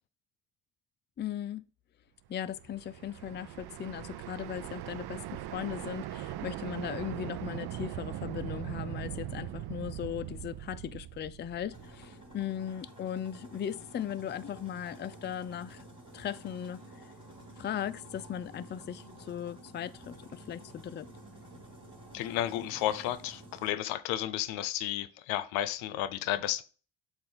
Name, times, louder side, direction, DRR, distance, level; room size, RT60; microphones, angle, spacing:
voice 1, 1.2-1.6 2.3-15.8 16.1-16.8 17.6-21.1, left 9 dB, 25° left, 0.4 m, -38 dB
sound 1, 2.4-12.4, right 13 dB, 55° right, 0.6 m, -40 dB
sound 2, 11.7-23.7, right 1 dB, 10° right, 3.3 m, -51 dB
voice 2, 22.1-26.6, left 13 dB, 85° left, 0.7 m, -32 dB
7.6 x 2.6 x 5.5 m
supercardioid pair, 65°, 47 cm